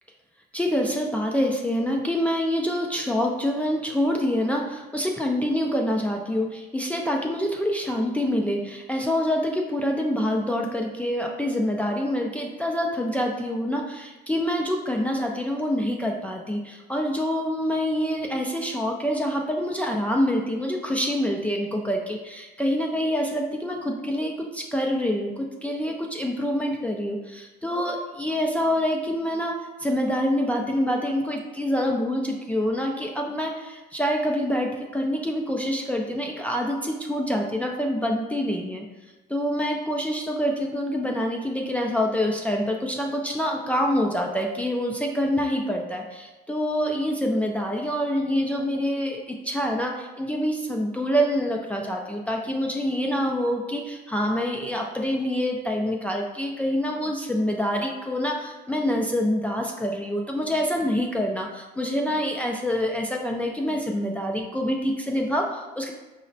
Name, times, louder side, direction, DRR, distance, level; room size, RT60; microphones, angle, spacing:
voice 1, 0.5-38.9 39.3-65.9, equal, 10° left, 0 dB, 0.3 m, -26 dB
4.8 x 2.1 x 2.6 m, 1.2 s
cardioid pair, 110°, 17 cm